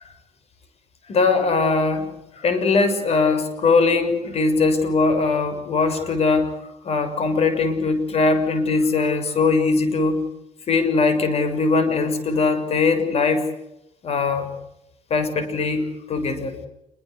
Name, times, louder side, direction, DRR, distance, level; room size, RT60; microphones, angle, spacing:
voice 1, 1.1-6.6 6.8-10.3 10.7-13.5 14.0-14.5 15.1-16.6, left 4 dB, 50° left, 9 dB, 6.7 m, -21 dB
28.0 x 23.5 x 8.3 m, 0.84 s
cardioid pair, 130°, 13 cm